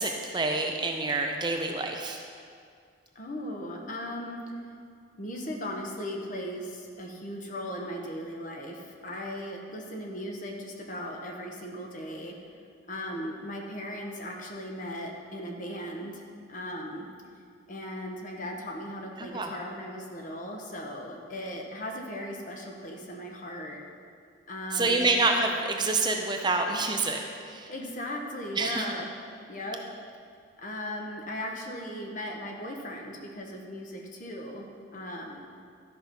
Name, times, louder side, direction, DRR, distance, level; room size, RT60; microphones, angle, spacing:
voice 1, 0.0-2.2 19.2-19.5 24.7-27.7 28.6-28.8, right 3 dB, 25° right, 3 dB, 0.5 m, -27 dB
voice 2, 3.1-4.7 5.2-12.3 12.9-17.1 17.7-23.8 24.5-25.1 27.7-29.1 29.5-29.8 30.6-35.4, equal, 40° left, 1 dB, 1.2 m, -37 dB
13.0 x 5.5 x 5.9 m, 2.3 s
head